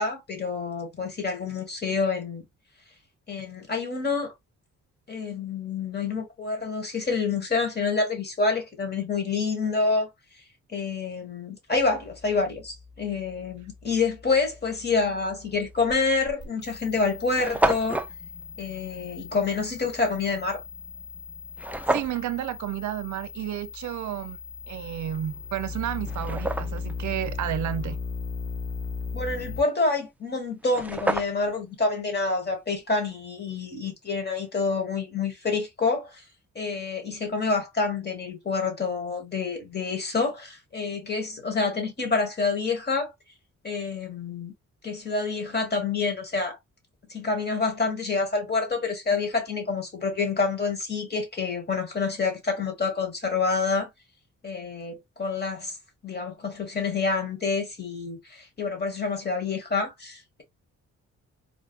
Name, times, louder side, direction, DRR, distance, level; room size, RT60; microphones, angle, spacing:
voice 1, 0.0-2.4 3.3-4.3 5.1-10.1 10.7-18.0 18.6-20.6 29.1-36.2 36.5-43.1 43.6-44.5 44.8-46.6 47.1-53.9 54.4-55.8 56.0-60.4, left 4 dB, 35° left, 1.4 m, -27 dB
sound 1, 11.7-29.6, left 4 dB, 55° left, 1.6 m, -38 dB
sound 2, 15.8-16.0 16.7-16.8 16.9-17.0 17.2-18.1 21.6-22.2 25.1-25.2 25.8-26.9 30.3-30.4 30.6-31.6, right 2 dB, 5° right, 0.3 m, -28 dB
voice 2, 21.9-24.4 24.7-28.0, right 11 dB, 75° right, 0.5 m, -31 dB
3.9 x 2.3 x 2.3 m
cardioid pair, 105°, 29 cm